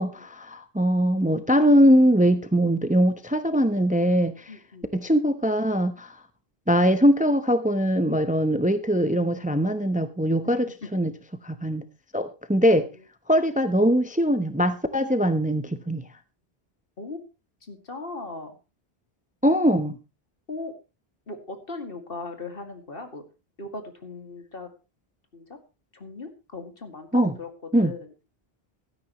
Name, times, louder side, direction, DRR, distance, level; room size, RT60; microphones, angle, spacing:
voice 1, 0.0-4.5 4.9-6.1 6.7-11.1 11.4-11.8 12.1-12.9 13.3-16.0 19.4-20.0 27.1-27.3 27.7-27.9, equal, 10° right, 10 dB, 0.8 m, -21 dB
voice 2, 4.5-4.9 10.4-11.0 12.9-13.0 17.0-17.2 17.6-18.6 20.5-20.7 21.3-23.2 23.6-24.7 25.3-25.6 25.9-27.5 27.8-28.1, left 3 dB, 60° left, 6 dB, 2.4 m, -38 dB
16.0 x 12.5 x 3.0 m, 0.29 s
omnidirectional pair, 1.1 m